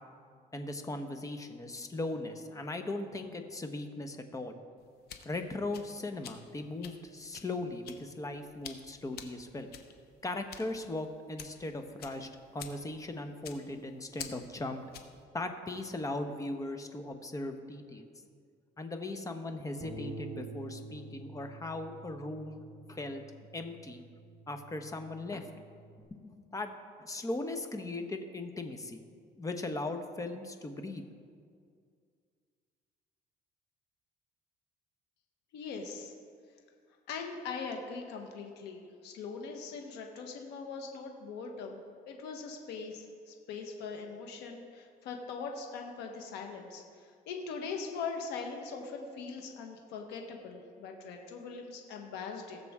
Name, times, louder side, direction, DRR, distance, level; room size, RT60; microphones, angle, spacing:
voice 1, 0.5-4.6 5.2-9.7 10.2-14.8 15.3-18.1 18.8-22.6 22.9-23.2 23.5-24.0 24.5-25.5 26.1-26.7 27.0-29.0 29.4-31.0, left 2 dB, 20° left, 6 dB, 1.0 m, -38 dB
sound 1, 4.8-15.2, left 8 dB, 70° left, 1.0 m, -49 dB
Bass guitar, 19.8-26.1, right 3 dB, 25° right, 2.9 m, -48 dB
voice 2, 35.5-36.1 37.1-52.6, left 5 dB, 85° left, 2 dB, 1.3 m, -41 dB
19.0 x 6.8 x 3.7 m, 2.2 s
cardioid pair, 110°, 17 cm